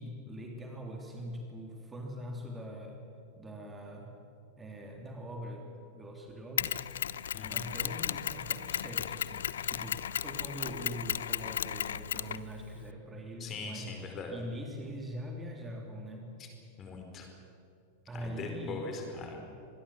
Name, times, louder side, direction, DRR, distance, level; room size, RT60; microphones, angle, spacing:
voice 1, 0.0-3.0 3.3-4.2 4.6-7.2 7.5-16.3 18.1-18.9, equal, 15° right, 1 dB, 3.1 m, -43 dB
Mechanisms, 6.6-12.9, left 9 dB, 65° left, 0.6 m, -35 dB
voice 2, 7.3-7.7 13.4-14.3 16.8-17.3 18.1-19.4, left 4 dB, 30° left, 3 dB, 4.8 m, -41 dB
25.0 x 21.0 x 7.6 m, 2.6 s
figure-of-eight pair, 90°, 0 cm